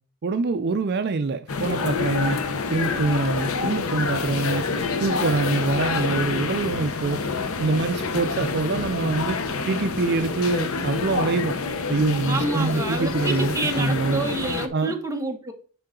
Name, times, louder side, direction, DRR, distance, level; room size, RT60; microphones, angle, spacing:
voice 1, 0.2-2.4 2.7-4.6 5.0-7.2 7.6-9.4 9.7-11.6 11.9-14.2 14.7-14.9, right 3 dB, 50° right, 0.4 m, -25 dB
sound 1, 1.5-14.7, left 4 dB, 75° left, 0.8 m, -27 dB
voice 2, 12.3-15.5, right 2 dB, 15° right, 1.0 m, -28 dB
10.0 x 3.8 x 3.7 m
head